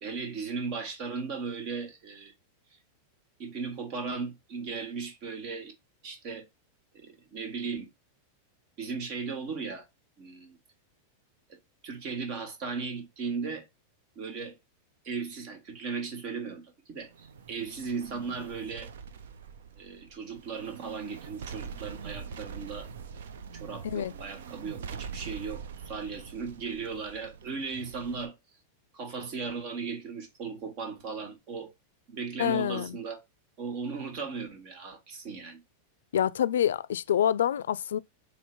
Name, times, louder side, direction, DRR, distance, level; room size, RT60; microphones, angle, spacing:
voice 1, 0.0-2.3 2.7-2.8 3.4-5.7 6.0-6.5 6.9-7.9 8.8-9.9 10.2-10.6 11.5-11.6 11.8-13.7 14.1-14.6 15.0-17.1 17.5-18.9 19.7-22.9 23.5-28.3 28.9-31.7 32.1-33.2 33.6-35.6, right 5 dB, 50° right, 1.5 m, -37 dB
Artillery Barrage, 17.0-28.3, right 6 dB, 80° right, 0.5 m, -43 dB
voice 2, 32.4-33.0 36.1-38.0, left 10 dB, 85° left, 0.3 m, -27 dB
2.9 x 2.8 x 4.4 m
hypercardioid pair, 115°, 0 cm